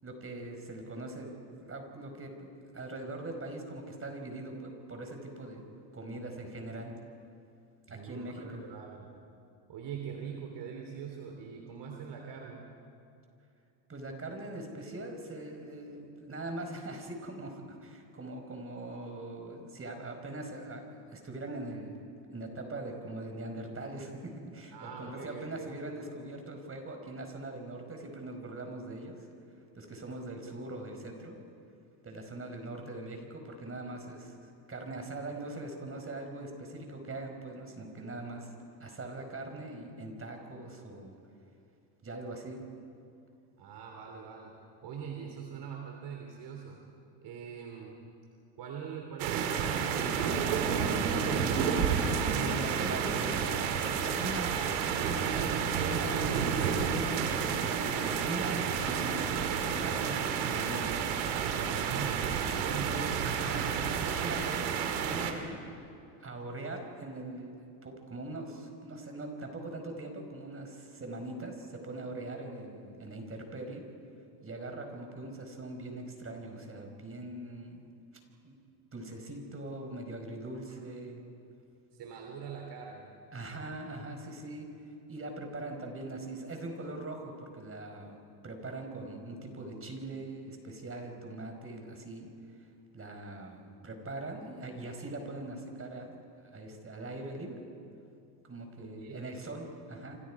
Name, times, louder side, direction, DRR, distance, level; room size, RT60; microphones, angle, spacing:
voice 1, 0.0-2.3 2.7-5.7 5.9-6.9 7.9-8.6 13.9-21.9 22.3-29.3 29.7-31.3 32.0-38.5 38.8-41.2 42.0-42.6 51.4-53.6 54.0-54.8 55.3-56.7 57.3-61.0 62.5-65.5 66.2-67.5 67.8-73.8 74.4-77.8 78.4-78.6 78.9-81.2 83.3-84.7 85.1-88.2 88.4-92.3 92.9-96.2 96.5-97.6 98.4-100.2, right 2 dB, 25° right, 4 dB, 5.0 m, -41 dB
voice 2, 7.9-9.1 9.7-12.6 24.7-25.7 43.6-44.5 44.8-46.8 47.2-48.0 48.6-50.3 61.8-63.0 81.9-83.1 98.8-99.2, right 7 dB, 55° right, 2 dB, 3.2 m, -43 dB
sound 1, 49.2-65.3, right 6 dB, 90° right, 2.3 m, -30 dB
27.5 x 27.0 x 4.9 m, 2.5 s
supercardioid pair, 90°, 49 cm